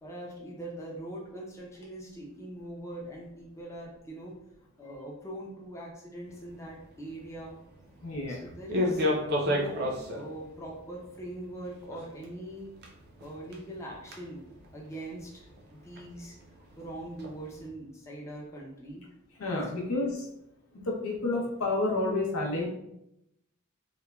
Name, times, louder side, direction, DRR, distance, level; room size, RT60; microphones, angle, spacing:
voice 1, 0.0-4.4 4.8-7.6 8.3-9.1 9.4-12.7 13.2-14.4 14.7-15.4 15.7-16.3 16.8-19.0, right 1 dB, 15° left, -3 dB, 0.4 m, -42 dB
sound 1, 6.3-17.7, left 1 dB, 45° right, 0.4 m, -36 dB
voice 2, 8.0-8.4 19.4-20.3 20.7-22.7, left 2 dB, 85° left, 0 dB, 0.6 m, -30 dB
3.0 x 2.1 x 2.2 m, 0.81 s
head